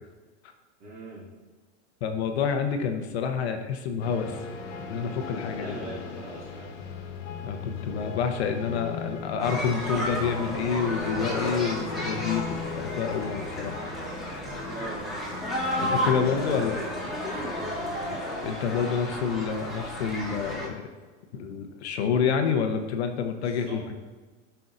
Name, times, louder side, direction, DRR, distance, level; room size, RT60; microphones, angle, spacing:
voice 1, 0.8-1.3 5.5-6.8 14.7-15.2 15.8-17.8 23.4-23.8, right 1 dB, 25° right, -5 dB, 2.4 m, -41 dB
voice 2, 2.0-4.4 4.9-5.7 7.4-13.8 15.8-16.8 18.4-20.8 21.3-24.0, left 6 dB, 60° left, 5 dB, 0.9 m, -28 dB
sound 1, 4.0-20.8, left 5 dB, 85° left, 1.4 m, -39 dB
sound 2, 9.4-20.7, equal, ahead, 1.2 m, -33 dB
12.0 x 5.6 x 2.6 m, 1.3 s
supercardioid pair, 160°, 36 cm